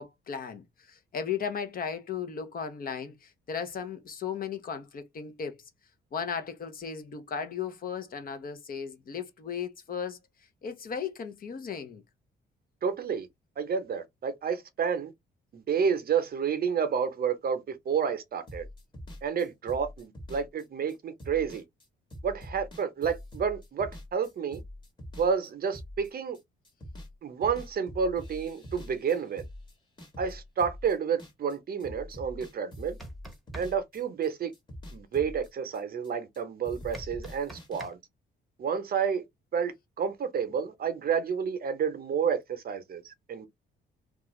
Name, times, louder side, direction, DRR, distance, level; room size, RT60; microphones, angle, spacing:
voice 1, 0.0-5.6 6.1-10.2 10.6-12.0, left 7 dB, 45° left, 0.7 m, -36 dB
voice 2, 12.8-13.3 13.6-15.1 15.5-18.7 19.2-21.6 22.2-24.6 25.2-26.4 27.2-29.4 30.2-33.0 33.5-34.5 34.9-38.0 38.6-39.2 39.5-43.5, right 6 dB, 50° right, 0.7 m, -30 dB
sound 1, 18.5-26.4 26.6-27.1 27.4-31.5 31.8-34.3 34.5-36.4 36.6-37.8, left 1 dB, 25° left, 1.2 m, -44 dB
sound 2, 32.8-33.7 36.9-37.9, right 1 dB, ahead, 0.9 m, -45 dB
2.4 x 2.4 x 3.0 m
cardioid pair, 90°, 20 cm